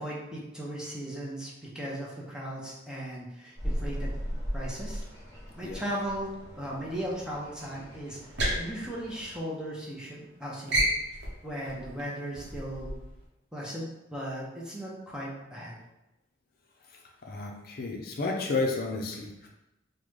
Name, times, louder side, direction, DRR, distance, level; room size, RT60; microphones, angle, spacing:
voice 1, 0.0-4.1 4.5-5.0 5.5-6.3 6.6-10.9 11.4-12.9 13.5-15.8, right 1 dB, 5° right, -5 dB, 0.6 m, -37 dB
sound 1, 3.6-9.4, equal, 20° right, 1.0 m, -38 dB
sound 2, 8.2-9.8 10.1-10.3 10.7-13.2, right 1 dB, 65° right, 0.8 m, -31 dB
voice 2, 16.9-19.5, left 3 dB, 55° left, 0 dB, 0.5 m, -32 dB
3.7 x 2.2 x 3.1 m, 0.94 s
head